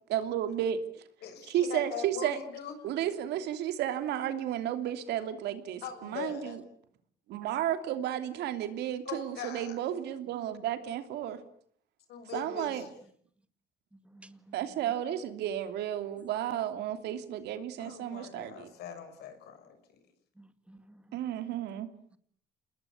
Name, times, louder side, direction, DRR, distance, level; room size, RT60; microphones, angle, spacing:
voice 1, 0.1-0.8 1.5-2.4 2.8-6.6 7.3-11.4 12.3-12.8 14.5-18.7 21.1-21.9, right 11 dB, 80° right, 3.0 m, -33 dB
voice 2, 1.2-2.7 5.8-6.6 9.1-9.7 12.1-12.9 17.8-20.0, left 8 dB, 75° left, 6.6 m, -41 dB
voice 3, 13.9-15.0 20.4-21.2, right 1 dB, 5° right, 2.1 m, -56 dB
28.5 x 20.0 x 8.6 m
cardioid pair, 110°, 17 cm